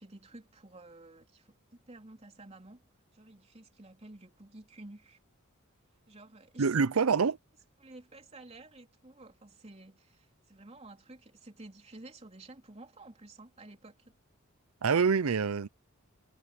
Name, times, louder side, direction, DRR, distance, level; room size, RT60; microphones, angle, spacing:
voice 1, 0.0-5.2 6.1-7.3 7.8-14.1, right 2 dB, 30° right, 3.3 m, -52 dB
voice 2, 6.6-7.4 14.8-15.7, right 5 dB, 75° right, 0.6 m, -26 dB
head